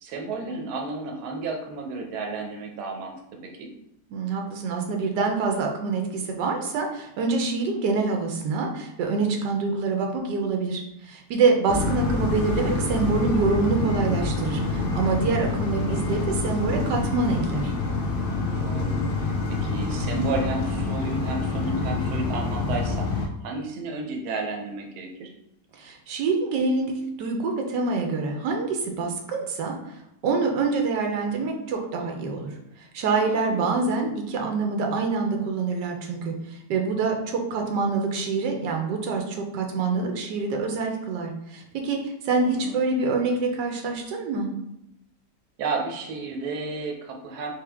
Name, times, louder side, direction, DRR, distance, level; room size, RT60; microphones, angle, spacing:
voice 1, 0.0-3.7 11.6-11.9 18.6-25.3 33.2-33.7 42.3-42.8 45.6-47.5, right 3 dB, 70° right, 2 dB, 1.2 m, -32 dB
voice 2, 4.1-17.7 25.7-29.7 30.2-32.5 32.8-44.5, right 4 dB, 90° right, 2 dB, 1.3 m, -26 dB
sound 1, 11.7-23.3, left 3 dB, 70° left, 0.5 m, -27 dB
3.5 x 3.2 x 3.4 m, 0.82 s
omnidirectional pair, 1.8 m